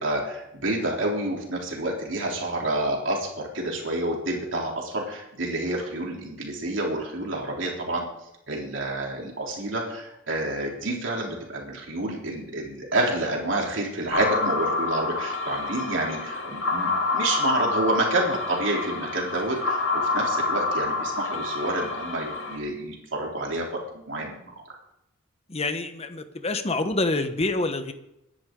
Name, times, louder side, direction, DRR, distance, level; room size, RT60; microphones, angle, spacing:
voice 1, 0.0-8.1 8.5-24.6, right 1 dB, 70° right, -1 dB, 3.5 m, -29 dB
sound 1, 14.1-22.6, left 3 dB, 70° left, 2.9 m, -28 dB
voice 2, 25.5-27.9, left 2 dB, 30° left, 9 dB, 1.1 m, -27 dB
22.5 x 10.5 x 3.8 m, 0.85 s
head